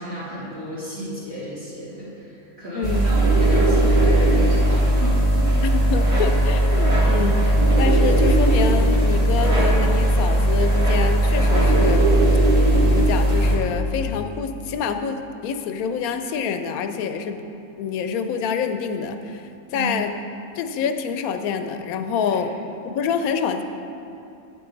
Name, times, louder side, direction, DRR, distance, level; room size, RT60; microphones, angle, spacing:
voice 1, 0.0-5.3 19.7-19.9 22.3-22.4, right 1 dB, 45° right, -11 dB, 2.5 m, -32 dB
voice 2, 2.7-3.1 5.6-12.0 12.9-17.4 17.8-20.2 20.6-22.5 22.8-23.6, left 6 dB, 80° left, 7 dB, 1.0 m, -26 dB
sound 1, 2.8-13.6, right 1 dB, 25° right, 1.4 m, -18 dB
8.5 x 7.7 x 3.9 m, 2.6 s
omnidirectional pair, 1.5 m